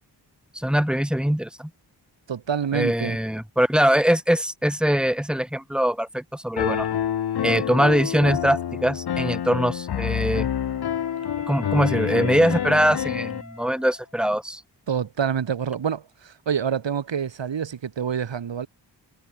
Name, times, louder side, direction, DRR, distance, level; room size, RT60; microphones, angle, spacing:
voice 1, 0.5-1.7 2.7-6.9 7.4-10.5 11.5-14.6, equal, ahead, 1.2 m, -22 dB
voice 2, 2.3-3.2 14.9-18.7, right 7 dB, 75° right, 2.6 m, -27 dB
Piano, 6.6-13.4, left 9 dB, 60° left, 0.8 m, -27 dB
Wind instrument woodwind instrument, 10.0-14.2, left 3 dB, 40° left, 7.7 m, -41 dB
cardioid pair, 40°, 44 cm